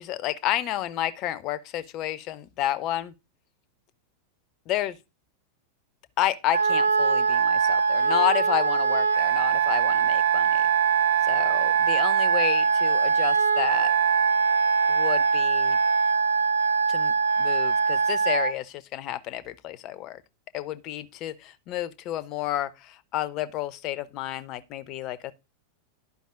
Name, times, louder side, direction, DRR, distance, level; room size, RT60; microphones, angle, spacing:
voice 1, 0.0-3.1 4.7-5.0 6.2-10.7 11.2-13.9 14.9-15.8 16.9-20.2 20.5-25.3, left 14 dB, 40° left, 0.6 m, -30 dB
Wind instrument woodwind instrument, 6.5-18.5, right 6 dB, 80° right, 0.6 m, -22 dB
11.5 x 5.2 x 2.5 m
figure-of-eight pair, 90°, 0 cm